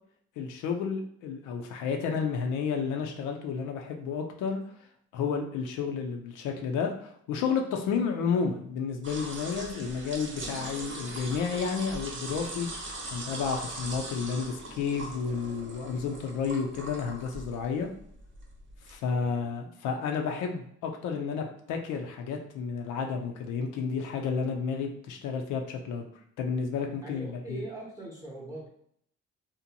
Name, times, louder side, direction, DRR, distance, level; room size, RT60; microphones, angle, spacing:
voice 1, 0.4-4.6 5.1-12.7 13.1-17.9 18.8-26.1 26.4-27.6, left 6 dB, 85° left, 3 dB, 0.5 m, -31 dB
sound 1, 9.0-19.0, right 2 dB, 40° right, 0.7 m, -40 dB
voice 2, 19.1-19.5 27.0-28.7, right 2 dB, 10° right, -3 dB, 0.7 m, -42 dB
2.6 x 2.1 x 2.7 m, 0.68 s
cardioid pair, 90°, 30 cm